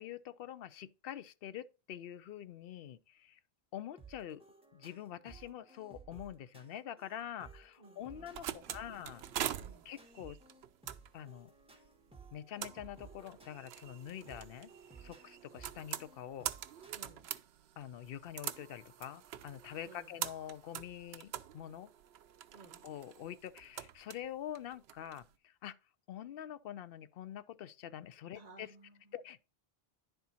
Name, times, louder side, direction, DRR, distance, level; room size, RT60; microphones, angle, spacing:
voice 1, 0.0-3.4 3.7-4.4 4.7-9.2 9.8-10.4 11.1-11.5 12.3-14.7 15.0-16.5 17.8-21.9 22.8-25.8 26.1-28.8 29.1-29.4, left 10 dB, 70° left, 0.7 m, -46 dB
sound 1, 4.0-16.9, right 4 dB, 5° right, 1.5 m, -58 dB
voice 2, 7.8-9.0 9.6-9.9 16.9-17.3 19.8-20.1 22.5-22.8 28.3-29.1, right 2 dB, 40° right, 1.2 m, -59 dB
sound 2, 8.0-25.2, right 11 dB, 85° right, 0.8 m, -45 dB
10.5 x 4.5 x 4.1 m
omnidirectional pair, 1.0 m